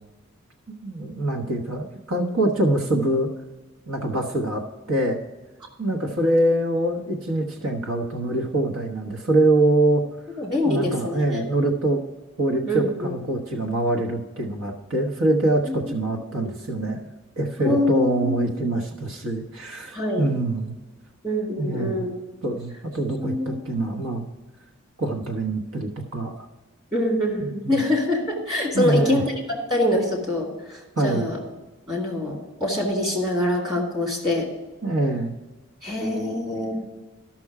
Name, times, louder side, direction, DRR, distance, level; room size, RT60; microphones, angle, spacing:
voice 1, 0.7-3.3 3.9-5.2 5.8-10.0 10.6-12.0 12.4-17.1 17.4-20.8 21.6-22.0 22.4-24.2 25.0-26.5 27.4-27.8 28.7-29.2 31.0-31.3 34.8-35.3, right 1 dB, 80° right, 1 dB, 1.2 m, -24 dB
voice 2, 10.4-11.4 12.7-13.2 15.7-15.8 16.3-16.5 17.6-18.4 19.9-20.3 21.2-22.1 23.2-23.6 26.9-31.4 31.9-34.5 35.8-36.8, left 1 dB, 20° right, -1 dB, 2.4 m, -25 dB
13.5 x 6.1 x 4.8 m, 1.2 s
head